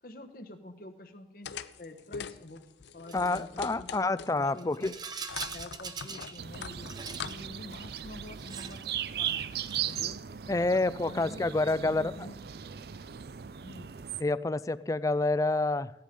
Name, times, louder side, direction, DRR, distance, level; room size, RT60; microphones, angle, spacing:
voice 1, 0.0-5.0 5.5-6.9 7.2-8.8 9.2-9.5 9.8-12.4 13.0-13.1 13.6-13.9, left 1 dB, 55° left, 7 dB, 1.2 m, -48 dB
sound 1, 1.4-4.4 4.8-8.0, left 6 dB, 80° left, 0.6 m, -43 dB
voice 2, 3.1-4.9 10.5-12.1 14.2-15.9, left 2 dB, 20° left, 17 dB, 0.3 m, -28 dB
Rattle, 3.1-3.4 4.5-6.4 6.7-7.4 8.2-8.9 9.5-10.2, right 5 dB, 25° right, 0.8 m, -42 dB
sound 2, 6.4-14.2, right 9 dB, 60° right, 0.5 m, -38 dB
15.0 x 10.5 x 5.2 m, 0.94 s
head